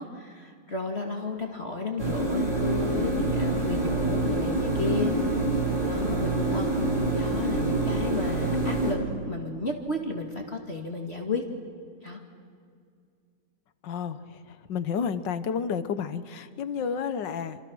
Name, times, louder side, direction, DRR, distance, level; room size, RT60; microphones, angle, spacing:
voice 1, 0.0-5.1 5.9-6.7 7.1-9.0 9.3-11.4 12.0-12.2, left 3 dB, 35° left, 2 dB, 2.1 m, -33 dB
sound 1, 2.0-8.9, right 2 dB, 40° right, 4.9 m, -26 dB
voice 2, 13.8-17.6, left 6 dB, 75° left, 12 dB, 1.8 m, -31 dB
28.0 x 27.5 x 6.2 m, 2.2 s
omnidirectional pair, 2.0 m